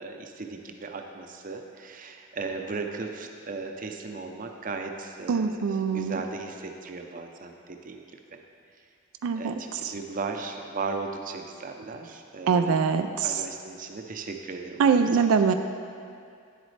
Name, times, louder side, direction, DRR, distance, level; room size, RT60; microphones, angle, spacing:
voice 1, 0.0-8.0 8.3-8.4 9.4-15.1, right 4 dB, 40° right, 4 dB, 0.6 m, -37 dB
voice 2, 5.3-6.2 9.2-9.9 12.5-13.4 14.8-15.5, right 6 dB, 85° right, 8 dB, 0.4 m, -23 dB
9.9 x 8.1 x 3.3 m, 2.4 s
head